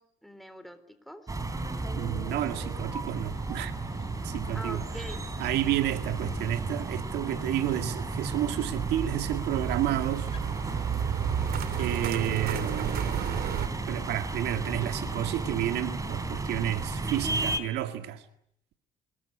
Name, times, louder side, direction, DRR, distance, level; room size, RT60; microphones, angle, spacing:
voice 1, 0.0-1.3 4.5-5.3, equal, ahead, 3.8 m, -43 dB
sound 1, 1.3-17.6, right 3 dB, 20° right, 4.0 m, -33 dB
voice 2, 2.0-3.7 4.2-4.8 5.4-10.3 11.8-13.3 13.9-18.2, right 13 dB, 80° right, 2.1 m, -31 dB
sound 2, 3.2-16.3, left 5 dB, 35° left, 5.5 m, -51 dB
sound 3, 7.9-13.7, right 10 dB, 65° right, 2.8 m, -33 dB
27.0 x 21.5 x 9.9 m
cardioid pair, 110°, 17 cm